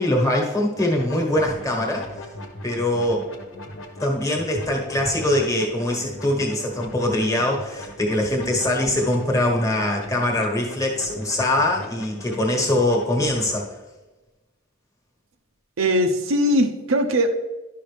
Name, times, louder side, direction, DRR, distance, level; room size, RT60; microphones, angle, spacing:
voice 1, 0.0-2.1 2.6-3.3 4.0-13.8, left 1 dB, 15° left, 0 dB, 1.3 m, -23 dB
sound 1, 0.7-13.5, left 1 dB, 70° left, 1.1 m, -39 dB
voice 2, 15.8-17.3, equal, 70° right, 5 dB, 0.6 m, -20 dB
11.0 x 5.7 x 3.3 m, 1.1 s
head